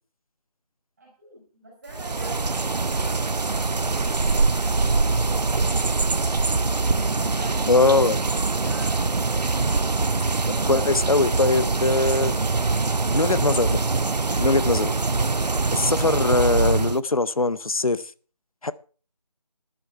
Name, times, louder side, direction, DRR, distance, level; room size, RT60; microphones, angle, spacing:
voice 1, 1.0-4.2 4.6-5.9 7.1-8.3 8.6-9.0, right 1 dB, 20° right, 4.1 m, -45 dB
sound 1, 1.9-17.0, right 3 dB, 90° right, 0.6 m, -23 dB
voice 2, 7.7-8.2 10.7-12.3 13.1-13.8 14.4-14.9 15.7-18.0 18.6-18.7, left 3 dB, 60° left, 0.7 m, -21 dB
12.5 x 11.0 x 4.6 m
figure-of-eight pair, 165°, 20 cm